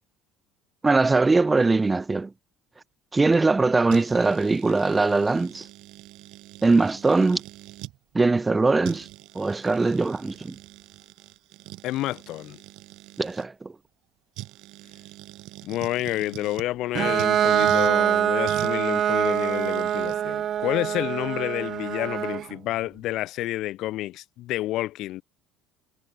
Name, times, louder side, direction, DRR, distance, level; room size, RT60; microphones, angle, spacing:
voice 1, 0.8-2.3 3.1-5.7 6.6-7.4 8.1-9.1 9.3-10.6 13.2-13.7, right 3 dB, 15° right, 0.5 m, -21 dB
sound 1, 3.9-8.0 8.5-8.6 8.8-13.5 14.4-16.7 17.2-17.9 18.5-20.2, right 18 dB, 70° right, 8.0 m, -43 dB
voice 2, 11.8-12.6 15.6-25.2, left 15 dB, 60° left, 2.5 m, -29 dB
Bowed string instrument, 16.9-22.5, right 10 dB, 45° right, 1.2 m, -24 dB
cardioid pair, 120°, 0 cm